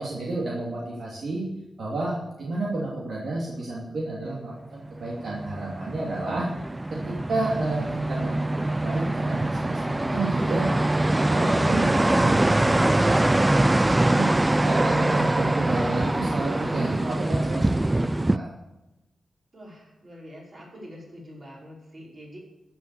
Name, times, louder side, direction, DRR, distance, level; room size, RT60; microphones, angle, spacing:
voice 1, 0.0-1.4 1.8-6.5 7.0-13.7 14.0-14.3 14.6-18.5, right 2 dB, 60° right, -5 dB, 2.7 m, -31 dB
sound 1, 4.9-18.4, right 1 dB, 15° right, 0.3 m, -23 dB
voice 2, 19.5-22.4, equal, 35° right, -4 dB, 5.3 m, -45 dB
14.5 x 7.3 x 6.9 m, 0.99 s
wide cardioid pair, 175°, 0 cm